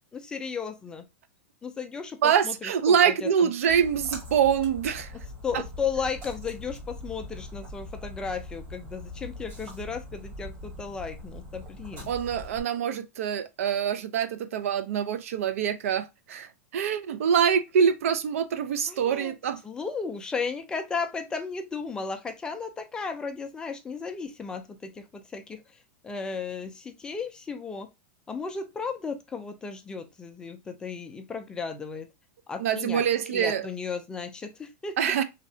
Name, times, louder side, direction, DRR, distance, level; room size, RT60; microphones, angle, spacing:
voice 1, 0.1-1.1 1.6-3.5 5.4-12.1 18.9-19.3 19.6-25.6 26.0-27.9 28.3-32.1 32.5-33.0 33.3-35.2, left 5 dB, 10° left, 0.4 m, -35 dB
voice 2, 2.2-5.1 5.5-5.6 12.1-19.6 32.6-33.7 35.0-35.2, right 8 dB, 75° right, 0.5 m, -25 dB
Splash splatter, 3.7-12.6, left 1 dB, 30° right, 1.6 m, -42 dB
3.2 x 2.8 x 2.7 m
supercardioid pair, 155°, 8 cm